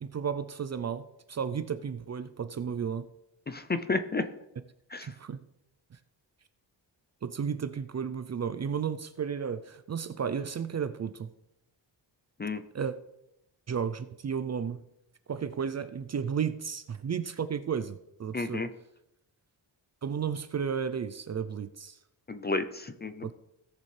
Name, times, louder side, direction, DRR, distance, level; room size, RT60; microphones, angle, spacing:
voice 1, 0.0-3.1 5.0-5.4 7.2-11.3 12.7-13.0 13.7-14.8 15.3-18.6 20.0-22.0 23.2-23.3, right 7 dB, 40° right, 12 dB, 0.4 m, -33 dB
voice 2, 3.5-4.3 4.9-5.1 12.4-12.6 18.3-18.7 22.3-23.3, left 3 dB, 25° left, 9 dB, 0.4 m, -31 dB
17.5 x 6.7 x 3.3 m, 0.85 s
wide cardioid pair, 170°, 45 cm